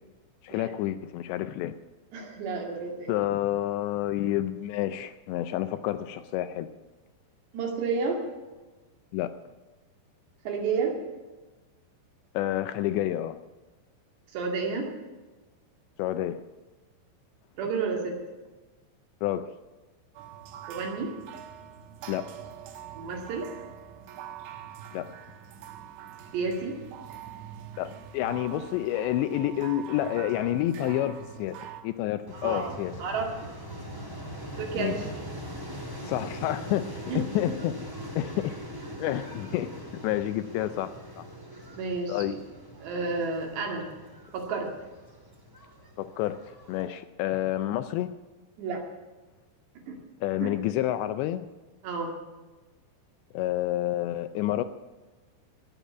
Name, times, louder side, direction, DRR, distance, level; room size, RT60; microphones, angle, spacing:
voice 1, 0.4-1.7 3.1-6.7 9.1-9.3 12.3-13.4 16.0-16.4 19.2-19.5 22.1-22.3 24.9-25.1 27.8-31.6 31.8-32.9 34.8-35.0 36.0-37.7 38.2-38.5 39.0-39.7 40.0-41.2 42.1-42.3 46.0-46.4 46.7-48.1 50.2-51.5 53.3-54.6, left 13 dB, 80° left, 11 dB, 2.7 m, -29 dB
voice 2, 2.1-3.1 7.5-8.2 10.5-11.0 14.3-14.9 17.6-18.1 20.7-21.1 23.0-23.5 26.3-26.8 32.3-32.7 33.0-33.5 34.6-35.2 37.1-37.2 41.7-42.4 42.8-43.8 44.3-44.7 48.6-48.8 49.9-50.0 50.4-50.5 51.8-52.1, right 4 dB, 70° right, 2 dB, 4.4 m, -31 dB
sound 1, 20.2-31.8, right 9 dB, 85° right, 3.6 m, -44 dB
sound 2, 32.3-46.9, equal, 15° right, 0.8 m, -41 dB
20.0 x 7.2 x 8.1 m, 1.2 s
omnidirectional pair, 5.4 m